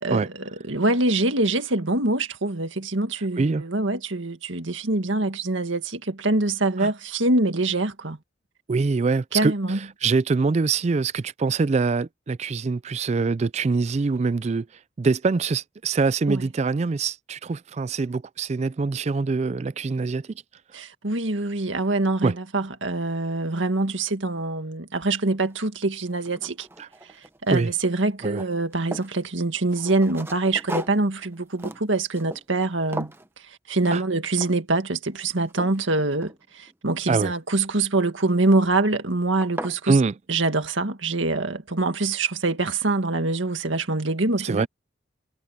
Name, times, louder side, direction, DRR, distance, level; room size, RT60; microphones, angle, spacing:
voice 1, 0.0-8.2 9.3-9.8 16.3-16.5 20.7-26.7 27.4-33.1 33.7-40.0 40.3-44.7, right 2 dB, 80° right, 1.9 m, -24 dB
voice 2, 8.7-14.7 15.0-20.3 22.2-22.3 26.8-26.9 27.5-27.7 28.2-28.4 33.9-34.0 37.1-37.3 39.9-40.1 44.4-44.7, right 4 dB, 35° right, 0.3 m, -24 dB
sound 1, 25.5-25.6 26.1-27.5 27.8-29.2 29.7-32.7 32.9-33.3 33.8-34.1 34.4-34.7 35.2-36.7 38.2-38.6 39.1-39.2 39.4-39.8, right 1 dB, 10° right, 1.1 m, -37 dB
head